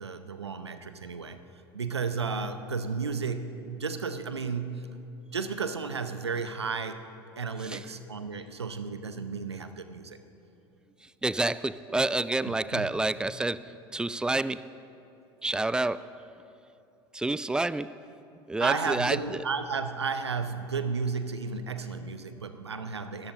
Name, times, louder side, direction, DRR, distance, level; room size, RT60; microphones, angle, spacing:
voice 1, 0.0-1.4 1.7-10.2 12.5-12.9 18.6-23.3, right 5 dB, 85° right, 10 dB, 0.7 m, -33 dB
voice 2, 11.0-14.7 15.4-16.1 17.1-18.0 18.5-19.4, right 2 dB, 5° right, 16 dB, 0.3 m, -29 dB
26.0 x 13.5 x 2.8 m, 2.7 s
figure-of-eight pair, 75°, 14 cm